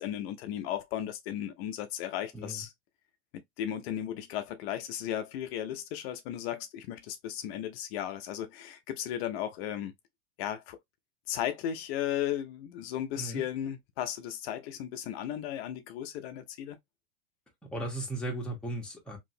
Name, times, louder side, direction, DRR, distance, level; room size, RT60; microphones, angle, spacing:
voice 1, 0.0-2.7 3.3-9.9 10.4-10.8 11.3-16.8, left 11 dB, 60° left, 0.5 m, -35 dB
voice 2, 17.6-19.2, right 1 dB, 5° left, 0.9 m, -36 dB
3.0 x 2.6 x 2.6 m
supercardioid pair, 140°, 35 cm